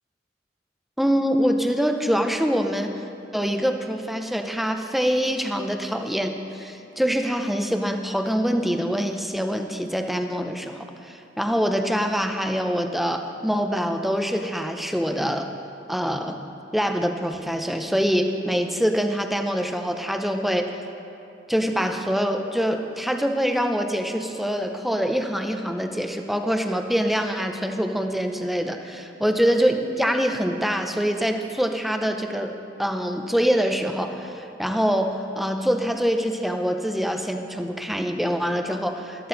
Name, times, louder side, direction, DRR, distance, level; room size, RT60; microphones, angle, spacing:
voice 1, 1.0-3.0 3.3-15.5 15.9-16.4 16.7-20.8 21.5-39.3, equal, ahead, 5 dB, 0.6 m, -25 dB
13.5 x 13.0 x 3.9 m, 2.7 s
head